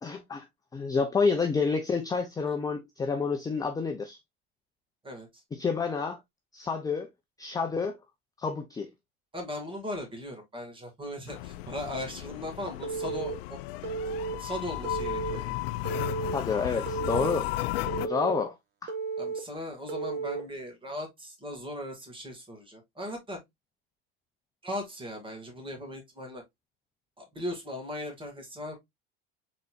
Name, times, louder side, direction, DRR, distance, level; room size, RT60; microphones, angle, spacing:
voice 1, 0.0-0.4 0.7-4.2 5.5-6.2 6.5-7.1 7.4-8.0 8.4-8.9 16.3-17.5 18.0-18.5 18.8-18.9, left 5 dB, 10° left, 0.5 m, -29 dB
voice 2, 9.3-13.6 14.4-15.6 19.2-23.4 24.6-26.4 27.2-28.8, left 1 dB, 15° right, 2.0 m, -38 dB
sound 1, 11.3-18.1, left 16 dB, 80° left, 0.4 m, -34 dB
Telephone, 12.8-13.3 13.8-14.3 14.8-15.4 15.8-16.4 16.9-17.4 17.9-18.4 18.9-19.4 19.9-20.4, right 5 dB, 40° right, 1.2 m, -33 dB
4.0 x 4.0 x 2.4 m
supercardioid pair, 115°, 29 cm